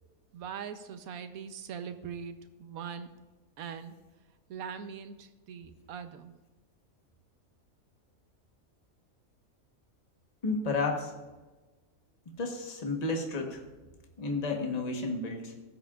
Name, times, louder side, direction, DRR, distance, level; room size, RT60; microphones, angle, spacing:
voice 1, 0.3-3.1 3.6-4.0 4.5-6.4, right 7 dB, 90° right, 10 dB, 1.2 m, -41 dB
voice 2, 10.4-11.1 12.4-13.6 14.2-15.5, left 3 dB, 30° left, 2 dB, 1.2 m, -32 dB
15.5 x 7.9 x 2.4 m, 1.2 s
omnidirectional pair, 1.5 m